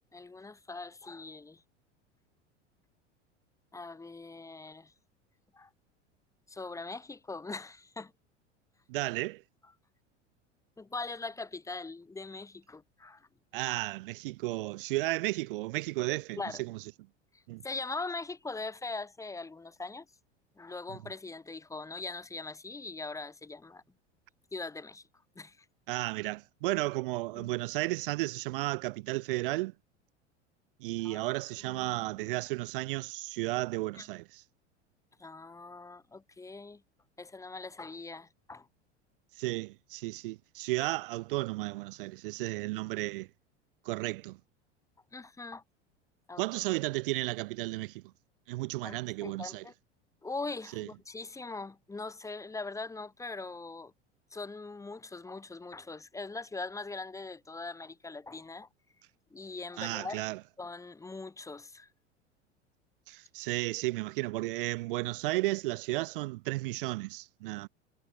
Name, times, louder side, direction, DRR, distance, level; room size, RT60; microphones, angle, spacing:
voice 1, 0.1-1.6 3.7-4.9 5.5-5.7 6.5-8.1 10.8-13.3 16.4-16.6 17.3-20.1 20.6-23.8 24.5-25.0 25.3-25.7 27.4-27.5 31.0-31.4 31.6-32.3 33.9-34.1 35.2-36.8 37.2-38.7 45.1-45.6 46.3-46.4 48.8-49.7 50.2-53.9 54.3-58.7 59.3-60.2 60.6-61.9, left 3 dB, 10° left, 1.0 m, -41 dB
voice 2, 8.9-9.4 13.5-16.8 17.5-17.6 25.9-29.7 30.8-34.4 39.3-43.3 43.8-44.4 46.4-48.0 48.5-49.6 50.8-50.9 59.8-60.4 63.1-67.7, right 20 dB, 50° right, 0.5 m, -33 dB
figure-of-eight pair, 80°, 35 cm